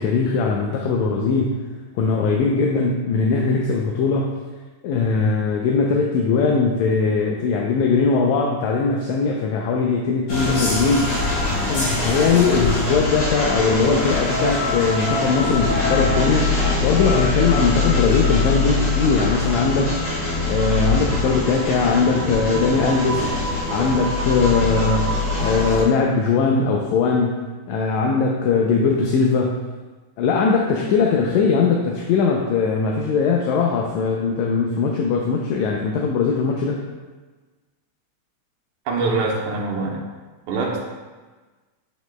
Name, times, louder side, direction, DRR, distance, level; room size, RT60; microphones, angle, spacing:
voice 1, 0.0-1.7 2.0-4.3 4.8-11.2 11.7-20.0 20.5-23.3 23.7-27.4 27.7-29.6 30.2-36.8, left 4 dB, 80° left, 0 dB, 1.8 m, -20 dB
sound 1, 10.3-25.8, left 3 dB, 50° left, 2.1 m, -23 dB
voice 2, 38.9-40.0 40.5-40.8, right 3 dB, 80° right, -1 dB, 2.3 m, -23 dB
9.2 x 5.1 x 2.2 m, 1.3 s
omnidirectional pair, 3.5 m